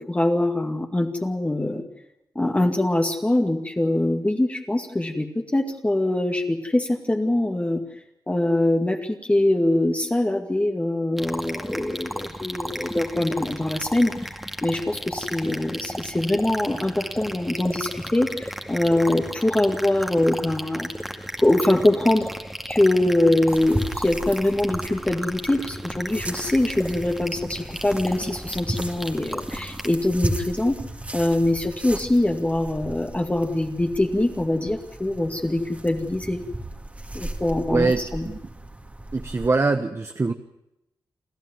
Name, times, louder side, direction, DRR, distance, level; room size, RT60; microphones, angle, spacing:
voice 1, 0.0-1.8 2.4-7.8 8.3-14.3 14.6-20.9 21.4-22.3 22.7-30.8 31.1-36.4 37.1-38.3, left 1 dB, 20° left, 2 dB, 2.2 m, -23 dB
sound 1, 11.2-29.9, equal, ahead, 2.2 m, -34 dB
sound 2, 23.5-39.5, right 1 dB, 20° right, 2.6 m, -36 dB
voice 2, 37.7-38.4 39.1-40.3, right 3 dB, 35° right, 7 dB, 1.3 m, -23 dB
29.5 x 12.5 x 9.5 m, 0.88 s
cardioid pair, 70°, 8 cm